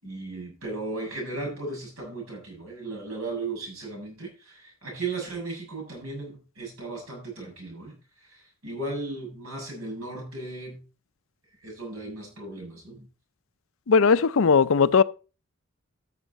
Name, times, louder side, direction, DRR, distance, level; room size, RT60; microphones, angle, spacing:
voice 1, 0.0-8.0 8.2-10.8 11.6-13.1, right 3 dB, 75° right, 6.9 m, -36 dB
voice 2, 13.9-15.0, left 5 dB, 65° left, 0.5 m, -18 dB
13.5 x 6.7 x 4.1 m
head